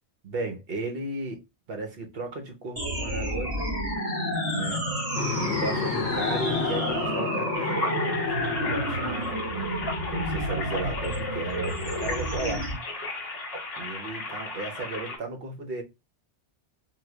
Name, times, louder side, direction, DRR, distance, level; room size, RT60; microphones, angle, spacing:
voice 1, 0.2-3.7 4.5-4.8 5.4-9.4 10.1-13.0 13.8-15.8, right 3 dB, 60° right, 1.0 m, -35 dB
sound 1, 2.8-12.8, equal, 20° right, 1.6 m, -30 dB
sound 2, 5.2-11.2, left 6 dB, 80° left, 0.9 m, -33 dB
sound 3, 7.5-15.2, left 2 dB, 60° left, 1.3 m, -35 dB
3.8 x 2.6 x 2.3 m
omnidirectional pair, 1.2 m